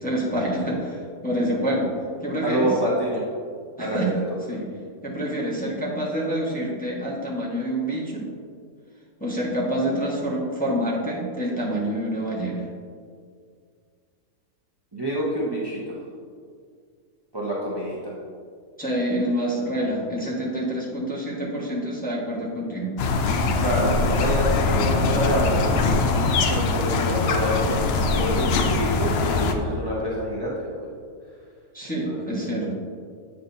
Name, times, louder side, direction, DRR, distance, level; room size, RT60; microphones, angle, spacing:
voice 1, 0.0-1.9 2.2-2.7 3.8-4.1 4.5-4.7 5.0-8.3 9.2-12.7 18.8-22.9 31.7-32.7, right 1 dB, 5° left, -5 dB, 0.8 m, -27 dB
voice 2, 2.4-3.2 3.8-4.2 14.9-15.9 17.3-18.1 23.6-25.6 26.1-27.9 28.1-30.9 32.0-32.3, equal, 20° right, -6 dB, 0.6 m, -27 dB
sound 1, 23.0-29.5, left 3 dB, 85° left, 0.5 m, -22 dB
8.3 x 6.0 x 2.7 m, 2.1 s
omnidirectional pair, 1.7 m